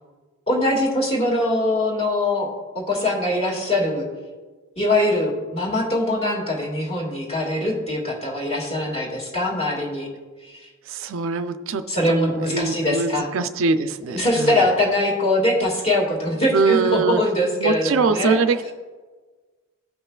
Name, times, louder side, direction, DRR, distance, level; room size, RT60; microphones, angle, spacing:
voice 1, 0.5-2.5 2.8-4.1 4.8-10.1 11.9-13.3 14.1-18.4, left 1 dB, 30° left, -1 dB, 1.9 m, -22 dB
voice 2, 10.9-14.6 16.5-17.2 17.6-18.7, right 4 dB, 70° right, 10 dB, 0.4 m, -23 dB
16.5 x 5.5 x 2.3 m, 1.4 s
head